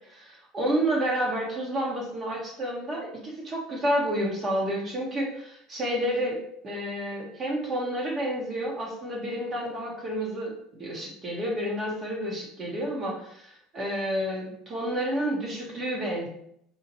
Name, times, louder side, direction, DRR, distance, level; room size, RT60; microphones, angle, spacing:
voice 1, 0.1-10.5 10.8-16.3, right 1 dB, 35° right, -2 dB, 1.3 m, -30 dB
4.5 x 2.5 x 3.0 m, 0.72 s
hypercardioid pair, 85°, 0 cm